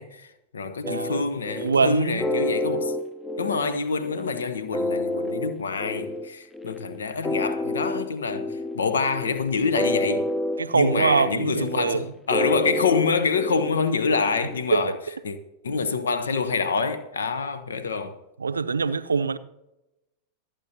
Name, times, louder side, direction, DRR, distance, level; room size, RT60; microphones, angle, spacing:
voice 1, 0.0-3.0 3.4-10.3 10.7-15.0 15.2-15.4 15.6-18.2, left 5 dB, 70° left, 1.0 m, -26 dB
sound 1, 0.8-14.6, left 1 dB, 5° left, 0.7 m, -29 dB
voice 2, 0.9-1.3 1.6-2.2 10.6-12.1 14.7-14.8 18.4-19.4, right 5 dB, 75° right, 0.6 m, -23 dB
27.0 x 9.0 x 2.9 m
figure-of-eight pair, 90°, 0 cm